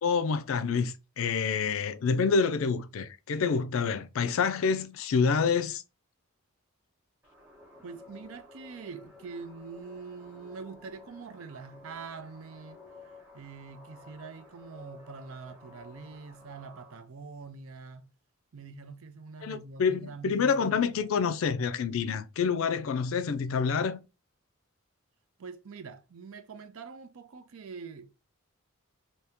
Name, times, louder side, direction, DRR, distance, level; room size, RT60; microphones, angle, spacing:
voice 1, 0.0-5.8 19.4-24.0, left 5 dB, 70° left, 0.4 m, -27 dB
sound 1, 7.2-17.0, left 2 dB, 10° right, 1.1 m, -53 dB
voice 2, 7.8-12.8 13.3-18.1 18.5-21.1 25.4-28.2, right 5 dB, 75° right, 0.5 m, -44 dB
2.8 x 2.8 x 3.5 m
head